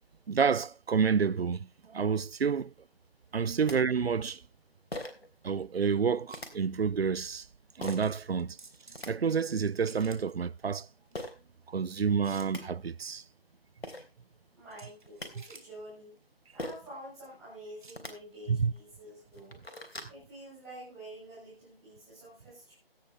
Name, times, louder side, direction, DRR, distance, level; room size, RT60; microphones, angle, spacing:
voice 1, 0.3-2.7 3.3-4.4 5.4-7.5 7.8-8.6 9.1-10.9 11.7-13.2 18.5-18.7, right 6 dB, 85° right, 0.5 m, -29 dB
sound 1, 3.7-3.8 4.9-5.3 6.3-6.5 7.8-8.1 8.7-9.1 11.1-11.3 12.1-12.2 12.4-12.6 13.5-13.6 13.8-14.0 14.9-15.3 16.6-16.9 17.8-18.1 18.8-18.9 19.2-20.1, left 1 dB, 85° left, 3.2 m, -40 dB
sound 2, 4.1-18.0, right 3 dB, 55° right, 2.2 m, -57 dB
voice 2, 14.5-16.2 16.5-19.6 20.1-22.7, right 1 dB, ahead, 0.6 m, -48 dB
16.0 x 8.0 x 3.5 m
figure-of-eight pair, 155°, 30 cm